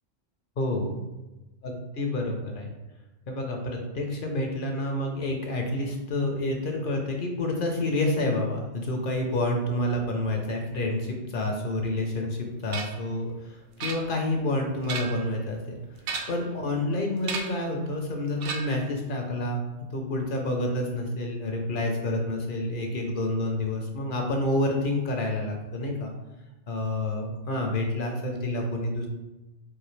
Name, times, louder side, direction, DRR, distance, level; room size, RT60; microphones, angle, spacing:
voice 1, 0.6-1.0 1.6-2.7 3.3-15.7 16.3-26.1 26.7-29.1, left 1 dB, 55° left, 2 dB, 0.7 m, -29 dB
sound 1, 12.7-13.1 13.8-14.4 14.7-15.3 16.0-16.5 17.2-17.7 18.4-18.9, right 5 dB, 75° right, 0.9 m, -34 dB
4.8 x 2.5 x 3.1 m, 1.1 s
omnidirectional pair, 1.3 m